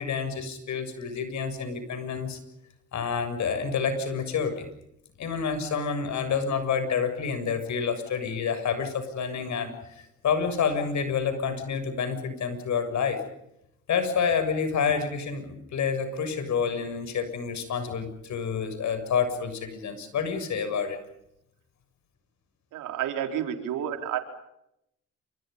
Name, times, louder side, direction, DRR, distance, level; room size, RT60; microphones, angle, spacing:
voice 1, 0.0-2.4 2.9-4.7 5.2-13.2 13.9-21.0, left 6 dB, 70° left, 9 dB, 7.2 m, -28 dB
voice 2, 22.7-24.2, right 10 dB, 85° right, 5 dB, 4.7 m, -30 dB
29.0 x 27.0 x 5.4 m, 0.79 s
cardioid pair, 90°, 30 cm